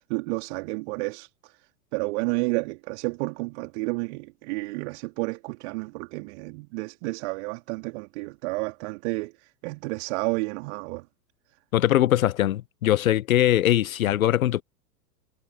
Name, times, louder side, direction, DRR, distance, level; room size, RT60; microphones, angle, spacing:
voice 1, 0.1-1.6 1.9-11.0, right 27 dB, 40° right, 3.2 m, -31 dB
voice 2, 11.7-14.6, left 13 dB, 55° left, 1.2 m, -21 dB
figure-of-eight pair, 100°, 49 cm